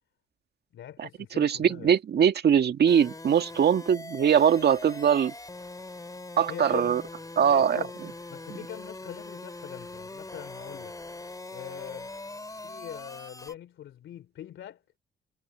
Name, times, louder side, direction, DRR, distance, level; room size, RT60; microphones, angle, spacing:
voice 1, 0.7-1.9 6.5-7.0 7.5-7.9 8.3-11.0 11.5-12.1 12.6-14.8, left 11 dB, 75° left, 3.2 m, -42 dB
voice 2, 1.4-5.3 6.4-7.0 7.4-7.8, right 8 dB, 55° right, 1.9 m, -22 dB
sound 1, 2.9-13.5, left 2 dB, 15° left, 3.6 m, -42 dB
cardioid pair, 90°, 20 cm